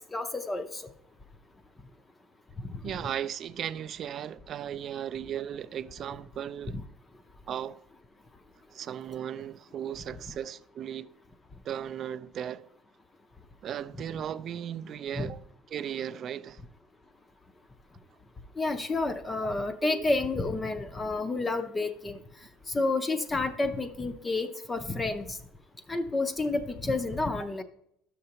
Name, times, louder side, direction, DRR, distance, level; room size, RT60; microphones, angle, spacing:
voice 1, 0.1-0.8 2.7-2.8 15.2-15.3 18.6-22.2 22.7-25.4 25.9-27.6, left 3 dB, 15° left, 0.5 m, -30 dB
voice 2, 2.8-6.8 7.5-7.8 8.7-11.1 11.6-12.7 13.6-16.6 19.1-19.2 19.8-20.1, right 9 dB, 40° right, 0.4 m, -36 dB
12.0 x 6.6 x 2.9 m
cardioid pair, 145°, 0 cm